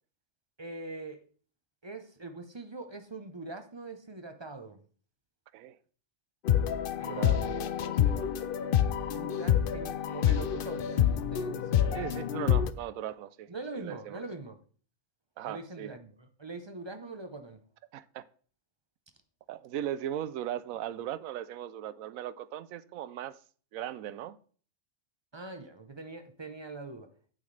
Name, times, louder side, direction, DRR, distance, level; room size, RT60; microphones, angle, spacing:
voice 1, 0.6-1.2 1.8-4.8 7.0-7.7 9.1-12.2 13.5-14.6 15.4-17.6 25.3-27.1, right 3 dB, 30° right, 0.6 m, -42 dB
sound 1, 6.5-12.7, left 10 dB, 60° left, 0.6 m, -27 dB
voice 2, 7.1-8.7 11.9-14.2 15.4-15.9 17.9-18.2 19.5-23.4 23.7-24.4, right 11 dB, 85° right, 1.0 m, -38 dB
8.7 x 8.3 x 3.2 m
omnidirectional pair, 1.4 m